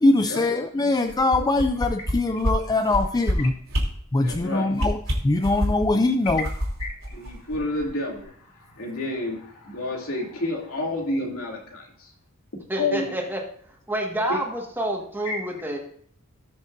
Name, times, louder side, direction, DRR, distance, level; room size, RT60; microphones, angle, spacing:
voice 1, 0.0-3.5 4.1-6.5, left 2 dB, 20° left, 8 dB, 0.4 m, -22 dB
sound 1, 1.1-2.1 2.4-2.5 2.9-3.3 3.7-3.8 4.2-4.4 4.7-5.9 6.3-7.9 8.2-8.3, equal, 80° right, 3.0 m, -26 dB
voice 2, 4.2-4.7 6.8-12.1 12.7-13.1 15.2-15.4, left 2 dB, 80° left, -1 dB, 2.6 m, -30 dB
voice 3, 12.7-13.4 13.9-15.8, right 1 dB, 10° right, 0 dB, 1.6 m, -28 dB
18.5 x 6.5 x 2.6 m, 0.62 s
head